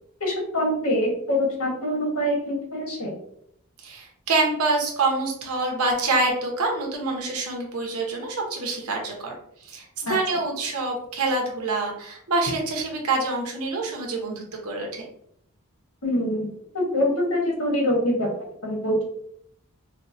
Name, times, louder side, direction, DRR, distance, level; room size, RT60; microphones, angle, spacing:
voice 1, 0.2-3.1 10.0-10.1 16.0-16.5 16.7-19.0, left 1 dB, 80° left, -1 dB, 1.3 m, -24 dB
voice 2, 3.8-15.0, right 3 dB, 90° right, 1 dB, 0.9 m, -26 dB
4.5 x 2.2 x 2.6 m, 0.70 s
head